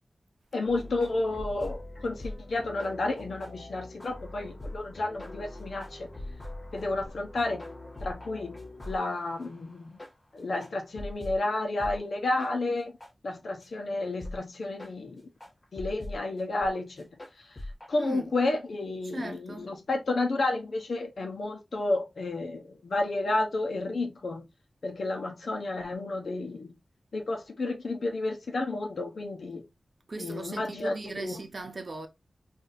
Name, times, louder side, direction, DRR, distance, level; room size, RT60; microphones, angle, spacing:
voice 1, 0.5-6.1 6.7-7.7 8.0-10.0 10.3-12.9 13.2-15.3 15.7-17.1 17.4-17.6 17.9-24.5 24.8-26.8 27.1-29.6 30.2-31.4, left 2 dB, 80° left, 0.9 m, -31 dB
sound 1, 0.6-11.4 11.8-12.0 12.4-12.5 13.0-13.1 13.6-13.7 14.2-14.4 14.8-14.9 15.4-16.2 16.6-16.7 17.0-17.9, left 1 dB, 40° left, 1.3 m, -42 dB
voice 2, 17.9-18.3 19.1-19.7 30.1-32.1, right 2 dB, 50° right, 0.7 m, -38 dB
4.1 x 2.7 x 2.6 m
wide cardioid pair, 90°, 0 cm